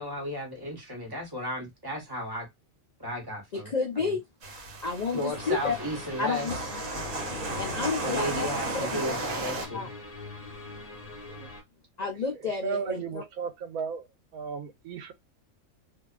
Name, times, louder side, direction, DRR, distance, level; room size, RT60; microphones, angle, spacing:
voice 1, 0.0-2.5 3.0-4.1 5.1-6.5 8.0-9.9, left 1 dB, 20° right, 1.0 m, -34 dB
voice 2, 3.5-4.2 4.8-5.7 6.2-6.5 7.6-8.5 9.0-9.2 9.7-9.9 12.0-13.2, left 4 dB, 70° left, 0.4 m, -30 dB
sound 1, 4.4-9.7, right 2 dB, 70° right, 1.2 m, -34 dB
sound 2, 5.3-11.6, left 3 dB, 35° left, 0.7 m, -43 dB
voice 3, 12.6-14.1 14.3-15.1, right 6 dB, 85° right, 1.1 m, -35 dB
2.7 x 2.2 x 2.3 m
omnidirectional pair, 1.5 m